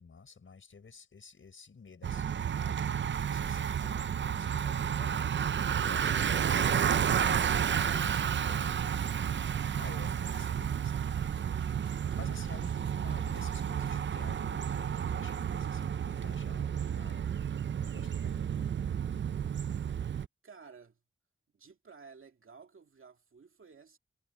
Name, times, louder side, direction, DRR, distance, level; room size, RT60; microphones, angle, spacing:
voice 1, 0.0-8.8 9.4-11.1 12.1-17.3 17.8-18.7, left 5 dB, 70° left, 6.1 m, -52 dB
Bicycle, 2.0-20.3, right 8 dB, 60° right, 0.5 m, -31 dB
sound 1, 10.9-14.1, right 2 dB, 25° right, 3.6 m, -60 dB
voice 2, 12.7-13.0 20.4-21.0 21.5-24.0, right 5 dB, 75° right, 2.3 m, -54 dB
wide cardioid pair, 110°, 21 cm